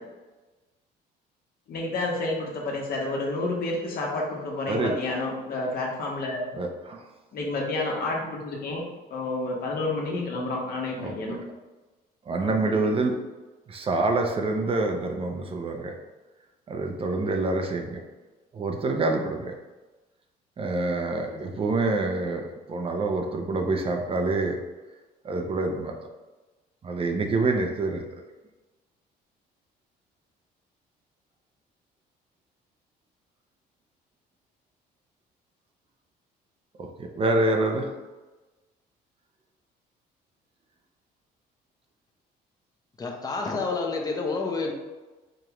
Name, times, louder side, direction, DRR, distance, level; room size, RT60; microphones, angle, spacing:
voice 1, 1.7-6.6 7.3-8.8 9.1-11.4 12.4-13.0 21.3-21.4, left 2 dB, 60° left, -2 dB, 1.3 m, -30 dB
voice 2, 6.5-7.0 11.0-11.1 12.3-13.1 13.7-15.9 16.7-18.0 18.5-19.5 20.6-24.6 25.2-25.9 26.8-28.0 36.8-37.9, right 2 dB, 35° right, 3 dB, 0.6 m, -26 dB
voice 3, 43.0-44.7, left 3 dB, 20° left, 0 dB, 0.8 m, -29 dB
5.0 x 3.6 x 3.0 m, 1.2 s
cardioid pair, 110°, 17 cm